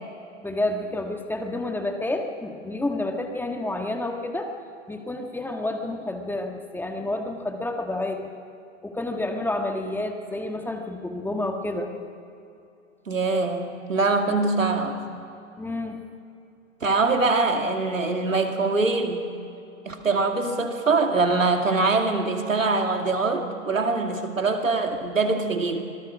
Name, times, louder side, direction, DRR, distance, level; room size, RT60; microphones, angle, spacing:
voice 1, 0.4-4.5 4.9-8.3 8.8-11.9 15.6-16.0, left 2 dB, 5° left, 4 dB, 1.5 m, -29 dB
voice 2, 13.1-15.0 16.8-19.2 19.9-25.8, right 3 dB, 90° right, 4 dB, 2.6 m, -23 dB
25.5 x 18.5 x 6.1 m, 2.7 s
hypercardioid pair, 110°, 38 cm